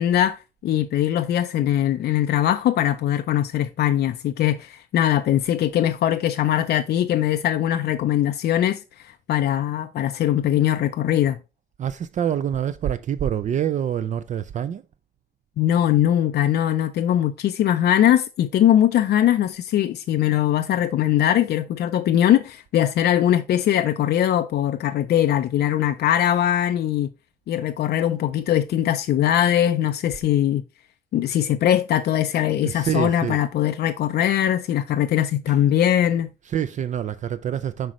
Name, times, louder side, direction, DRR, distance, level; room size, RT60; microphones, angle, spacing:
voice 1, 0.0-11.4 15.6-27.1 27.5-30.6 31.1-36.3, left 11 dB, 80° left, 0.5 m, -21 dB
voice 2, 11.8-14.8 32.6-33.4 35.5-35.6 36.4-37.9, right 9 dB, 50° right, 0.4 m, -26 dB
7.7 x 5.2 x 3.0 m
wide cardioid pair, 165°, 17 cm